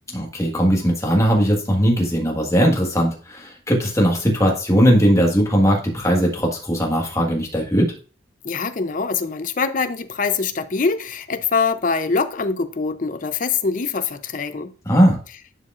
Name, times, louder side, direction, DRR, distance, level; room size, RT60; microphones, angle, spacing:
voice 1, 0.1-7.9 14.8-15.2, equal, 15° left, 1.6 m, -18 dB
voice 2, 8.4-14.7, left 5 dB, 45° left, 0.5 m, -23 dB
11.0 x 4.8 x 2.5 m
head